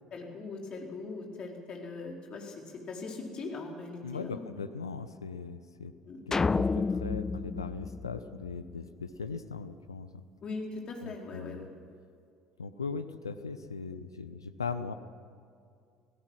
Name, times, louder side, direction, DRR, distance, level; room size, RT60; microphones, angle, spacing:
voice 1, 0.1-4.5 6.0-6.2 10.4-11.7, left 3 dB, 40° left, 0 dB, 4.5 m, -40 dB
voice 2, 4.0-5.9 6.3-10.2 11.0-11.7 12.6-14.9, left 5 dB, 85° left, 11 dB, 0.9 m, -39 dB
sound 1, 6.3-8.8, left 4 dB, 20° left, 0.5 m, -30 dB
26.0 x 17.0 x 6.1 m, 2.4 s
figure-of-eight pair, 60°, 2 cm